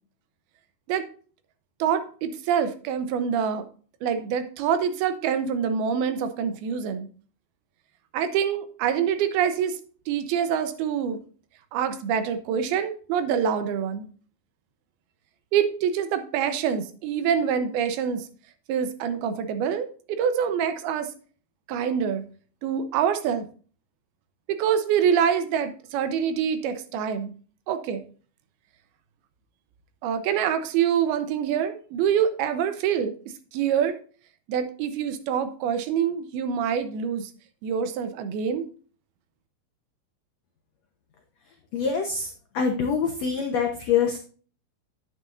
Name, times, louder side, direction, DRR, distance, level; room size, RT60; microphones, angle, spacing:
voice 1, 1.8-3.7 4.0-7.1 8.1-9.8 10.1-11.2 11.7-14.0 15.5-18.3 18.7-21.1 21.7-22.2 22.6-23.5 24.5-27.3 27.7-28.0 30.0-33.1 33.5-34.0 34.5-37.3 37.6-38.6, right 8 dB, 80° right, 9 dB, 2.8 m, -25 dB
voice 2, 41.7-42.3 42.5-44.2, left 6 dB, 80° left, 3 dB, 1.5 m, -25 dB
9.5 x 9.5 x 2.6 m, 0.41 s
omnidirectional pair, 4.4 m